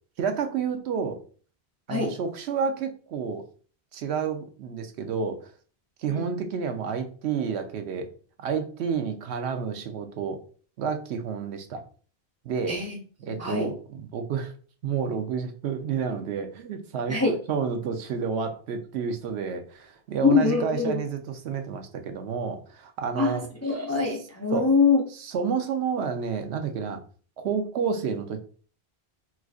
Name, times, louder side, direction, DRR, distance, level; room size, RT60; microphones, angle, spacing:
voice 1, 0.2-1.2 1.9-3.5 3.9-5.5 6.0-8.1 8.4-10.4 10.8-11.8 12.4-12.8 13.2-14.5 14.8-17.2 17.5-23.4 24.5-24.7 25.1-27.0 27.4-28.4, right 6 dB, 80° right, 6 dB, 0.9 m, -30 dB
voice 2, 12.7-13.7 17.1-17.4 20.2-21.0 23.2-25.0, left 4 dB, 20° left, -1 dB, 0.4 m, -24 dB
4.5 x 2.4 x 2.3 m, 0.41 s
omnidirectional pair, 1.1 m